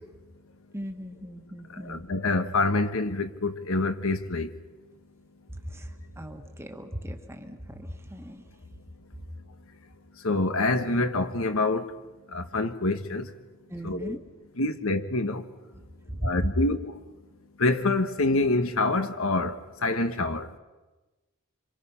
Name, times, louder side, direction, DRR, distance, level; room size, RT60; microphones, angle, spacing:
voice 1, 0.7-2.0 5.7-8.4 13.7-14.2 16.1-16.2, equal, 10° right, 1.6 m, -39 dB
voice 2, 1.8-4.5 10.2-12.0 12.3-13.3 13.8-14.2 14.6-15.4 16.2-17.0 17.6-20.5, left 2 dB, 70° left, 1.4 m, -26 dB
27.0 x 25.5 x 5.7 m
head